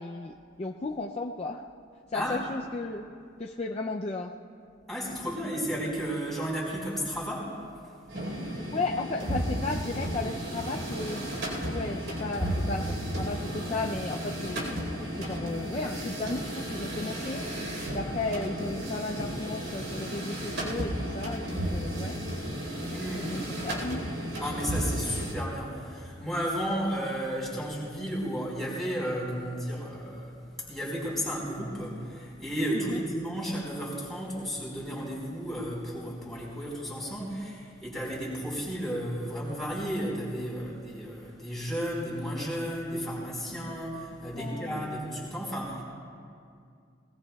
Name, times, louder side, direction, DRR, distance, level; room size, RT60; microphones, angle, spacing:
voice 1, 0.0-1.7 2.1-3.1 3.4-4.3 8.7-11.3 11.7-14.7 15.2-17.4 17.9-22.2 23.2-24.0 32.9-33.0 44.3-44.9, left 2 dB, 30° left, 0 dB, 0.5 m, -34 dB
voice 2, 4.9-7.5 7.8-7.9 22.9-23.5 24.4-30.4 30.7-45.8, equal, ahead, -6 dB, 4.4 m, -33 dB
sound 1, 8.1-25.3, equal, 70° right, 4.1 m, -33 dB
21.5 x 21.0 x 2.3 m, 2.3 s
head